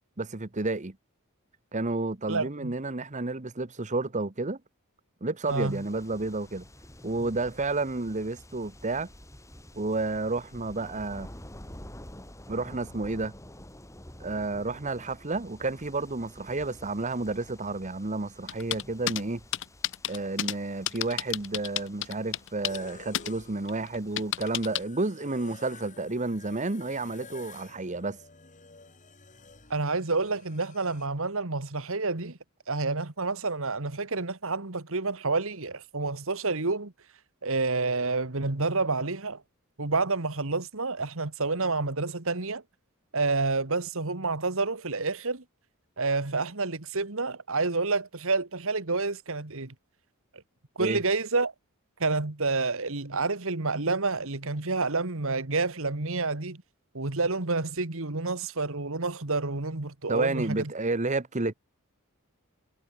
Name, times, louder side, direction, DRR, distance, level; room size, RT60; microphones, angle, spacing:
voice 1, 0.2-1.0 1.7-4.6 5.2-6.6 7.0-9.1 9.7-11.3 12.5-13.3 14.2-19.4 20.1-28.2 50.8-51.0 60.1-61.5, right 2 dB, 35° right, 1.2 m, -31 dB
voice 2, 2.3-2.7 5.5-5.8 29.7-32.4 32.7-36.9 37.4-39.4 39.8-42.6 43.1-45.4 46.0-49.7 50.8-51.5 52.0-56.6 56.9-60.7, right 3 dB, 65° right, 1.9 m, -29 dB
sound 1, 5.5-24.8, left 1 dB, 15° left, 3.8 m, -49 dB
sound 2, 18.5-19.2 19.5-20.5 20.9-22.9 23.1-23.3 23.7-24.8, left 12 dB, 55° left, 0.8 m, -30 dB
sound 3, 22.7-31.1, left 4 dB, 35° left, 4.1 m, -51 dB
head